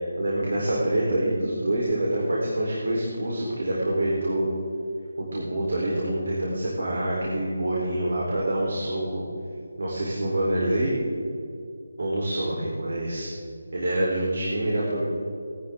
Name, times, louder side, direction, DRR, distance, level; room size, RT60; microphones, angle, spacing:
voice 1, 0.0-4.5 5.2-9.2 9.8-10.9 12.0-13.3 13.7-15.0, right 1 dB, 65° right, -4 dB, 4.3 m, -26 dB
19.0 x 13.5 x 3.9 m, 2.5 s
figure-of-eight pair, 175°, 0 cm